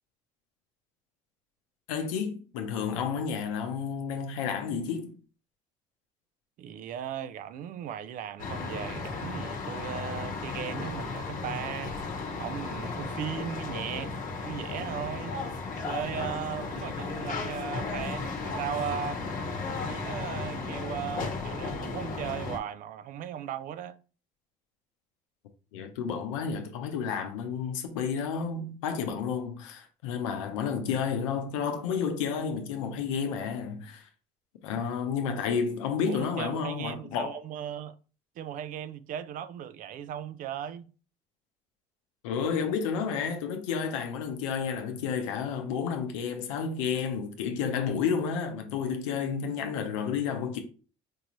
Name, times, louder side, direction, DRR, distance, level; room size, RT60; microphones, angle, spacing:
voice 1, 1.9-5.2 25.7-34.1 34.6-37.4 42.2-50.6, left 6 dB, 90° left, 0.7 m, -31 dB
voice 2, 6.6-12.0 12.4-14.1 14.4-15.4 15.8-19.2 19.7-24.0 36.1-38.0 38.4-40.9, right 9 dB, 55° right, 0.4 m, -37 dB
sound 1, 8.4-22.6, left 4 dB, 55° left, 0.9 m, -35 dB
4.6 x 2.5 x 3.0 m
supercardioid pair, 70°, 16 cm